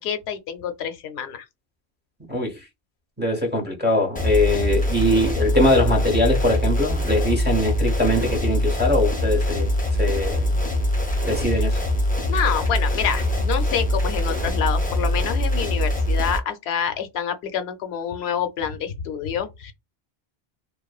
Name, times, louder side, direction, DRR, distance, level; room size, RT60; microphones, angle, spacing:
voice 1, 0.0-1.5 12.2-19.7, left 8 dB, 85° left, 0.8 m, -27 dB
voice 2, 2.3-2.6 3.2-9.7 10.0-10.6 11.2-11.8, left 1 dB, 10° right, 0.8 m, -22 dB
sound 1, 4.2-16.4, left 1 dB, 10° left, 0.4 m, -23 dB
3.0 x 2.1 x 2.3 m
omnidirectional pair, 1.1 m